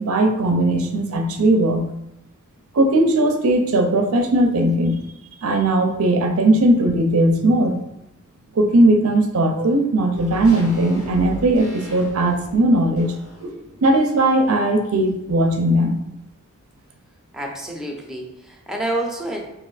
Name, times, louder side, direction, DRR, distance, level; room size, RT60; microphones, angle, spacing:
voice 1, 0.0-1.9 2.7-5.0 5.4-7.8 8.6-13.1 13.4-13.5 13.8-16.0, right 1 dB, 75° right, 4 dB, 0.5 m, -18 dB
sound 1, 10.1-14.6 14.9-15.0, equal, 85° left, 1.4 m, -38 dB
voice 2, 17.3-19.4, right 1 dB, ahead, -1 dB, 0.6 m, -28 dB
3.2 x 2.8 x 3.9 m, 0.84 s
head